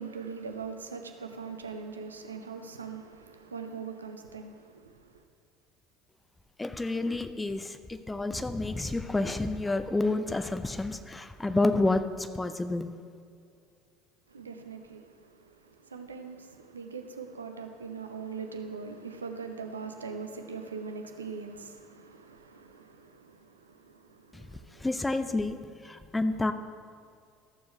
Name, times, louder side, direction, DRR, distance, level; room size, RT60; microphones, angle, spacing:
voice 1, 0.0-5.2 14.3-24.9 25.9-26.0, right 5 dB, 80° right, 0.6 m, -42 dB
voice 2, 6.6-12.9 24.3-25.6 25.8-26.5, left 2 dB, 10° left, 0.6 m, -29 dB
14.0 x 7.0 x 3.2 m
figure-of-eight pair, 65°, 0 cm